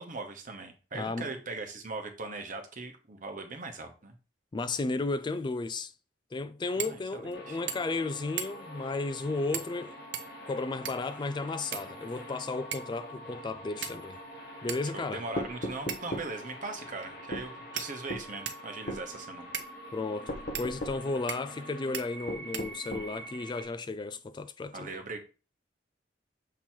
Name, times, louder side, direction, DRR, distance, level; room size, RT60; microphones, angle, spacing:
voice 1, 0.0-4.2 6.7-7.6 14.9-19.5 24.7-25.2, right 3 dB, 45° right, 1.1 m, -40 dB
voice 2, 0.9-1.3 4.5-5.9 6.3-10.0 10.5-14.2 14.6-15.2 19.9-24.9, left 3 dB, 25° left, 0.3 m, -34 dB
sound 1, 6.8-7.0 7.3-7.4 7.7-8.0 8.4-8.8 9.5-9.8 10.1-11.1 11.7-12.3 12.7-13.0 13.8-14.2 14.7-14.8 15.9-16.2 17.0-17.1 17.8-18.7 19.5-19.7 20.5-20.7 21.3-21.6 21.9-22.1 22.5-23.1, right 8 dB, 80° right, 0.7 m, -38 dB
sound 2, 7.3-23.6, equal, 65° left, 2.3 m, -46 dB
sound 3, 15.4-16.3 17.3-17.5 18.1-18.3 18.9-19.1 20.3-21.0 22.3-23.1, equal, 45° left, 0.9 m, -36 dB
7.2 x 3.0 x 4.5 m
head